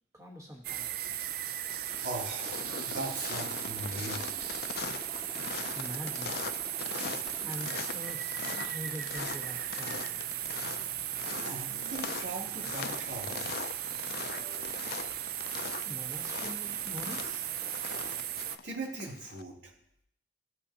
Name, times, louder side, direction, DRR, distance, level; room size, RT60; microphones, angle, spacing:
voice 1, 0.1-0.9 5.7-6.4 7.4-10.1 15.8-17.6, equal, 15° right, 0 dB, 1.1 m, -44 dB
sound 1, 0.6-18.6, right 11 dB, 55° right, 0.4 m, -37 dB
sound 2, 0.9-1.2 1.5-19.4, left 6 dB, 60° left, 0.4 m, -41 dB
Motorcycle, 1.8-7.6, right 1 dB, 35° right, 2.5 m, -50 dB
voice 2, 2.0-4.4 11.4-13.5 14.3-14.7 17.0-17.1 18.6-19.7, right 2 dB, 90° right, -5 dB, 2.9 m, -40 dB
15.0 x 5.3 x 2.8 m, 0.68 s
head